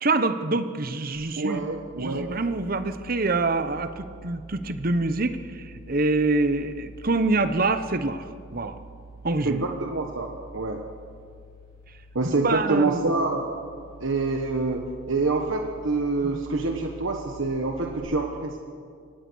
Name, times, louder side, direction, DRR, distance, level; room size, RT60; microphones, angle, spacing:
voice 1, 0.0-1.6 2.0-8.3 8.5-8.8 9.2-9.6 12.4-13.1 16.2-16.4, right 3 dB, 45° right, 10 dB, 1.0 m, -26 dB
sound 1, 1.1-18.0, right 2 dB, 45° left, 7.4 m, -47 dB
voice 2, 1.4-2.3 9.4-10.8 12.1-13.5 14.0-18.6, right 3 dB, 70° right, 3 dB, 1.3 m, -26 dB
23.5 x 19.0 x 6.3 m, 2.2 s
head